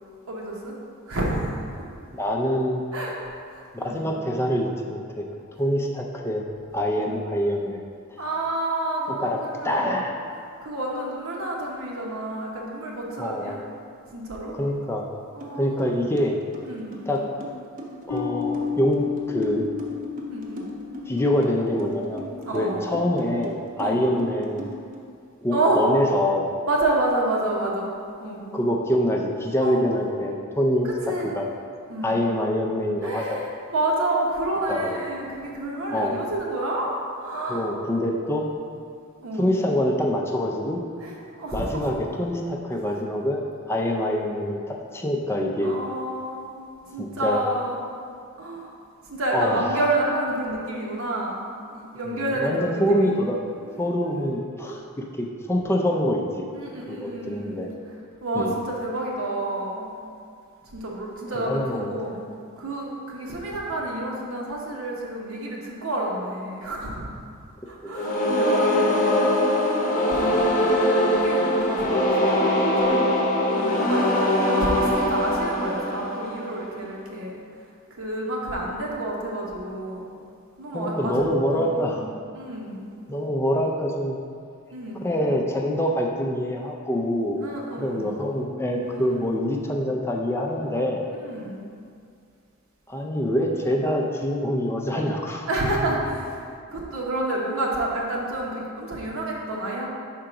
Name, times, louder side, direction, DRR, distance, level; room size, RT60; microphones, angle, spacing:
voice 1, 0.3-0.8 1.1-1.8 2.9-3.1 3.5-4.0 8.2-9.8 10.3-13.6 14.1-14.6 15.3-15.9 16.6-17.0 20.3-20.6 22.5-23.0 23.8-24.1 25.5-25.8 26.6-27.9 28.2-28.4 29.6-29.8 30.8-31.4 31.9-32.1 33.0-37.6 39.2-39.5 41.0-41.9 42.8-43.0 43.8-44.1 45.6-46.6 46.9-47.8 48.4-48.7 49.0-51.4 51.7-53.2 53.6-53.8 54.0-54.8 56.5-57.6 58.2-59.9 60.6-62.2 62.6-67.1 67.7-74.1 74.5-77.4 78.0-80.1 80.6-81.2 81.5-81.9 82.3-82.8 84.7-85.0 87.4-88.2 88.9-89.3 91.1-91.6 95.5-99.9, right 1 dB, 70° right, -2 dB, 1.1 m, -29 dB
voice 2, 2.1-2.8 3.7-5.2 5.6-6.4 6.7-7.8 9.1-10.3 13.2-13.6 14.6-15.1 15.5-16.4 17.1-17.2 18.1-19.7 21.1-22.3 22.5-24.7 25.4-26.5 28.5-30.9 31.3-31.5 32.0-33.4 34.7-35.1 35.9-36.2 37.5-38.5 39.4-40.8 41.5-45.7 47.0-47.4 49.3-49.8 52.0-53.4 53.8-56.5 56.9-57.7 58.3-58.6 61.4-62.1 67.8-67.9 80.7-82.0 83.1-84.2 85.0-87.5 87.8-91.0 92.9-95.5, equal, 10° left, 0 dB, 0.4 m, -25 dB
sound 1, 15.4-15.5 15.8-25.0, right 1 dB, 40° right, 0.7 m, -39 dB
Bass guitar, 18.1-21.6, left 7 dB, 75° left, 0.6 m, -31 dB
sound 2, 67.9-76.8, left 1 dB, 40° left, 0.8 m, -22 dB
4.9 x 3.7 x 5.7 m, 2.3 s
head